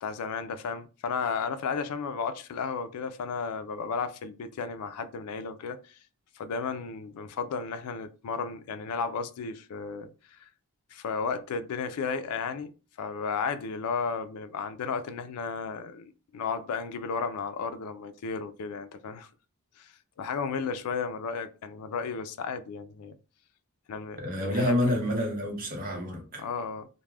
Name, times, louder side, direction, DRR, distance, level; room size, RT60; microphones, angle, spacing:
voice 1, 0.0-5.9 6.4-10.1 10.9-19.3 19.8-23.2 23.9-24.8 26.4-26.9, left 5 dB, 85° left, 0.4 m, -34 dB
voice 2, 24.2-26.5, left 1 dB, 40° right, 0.7 m, -28 dB
2.3 x 2.0 x 3.2 m
head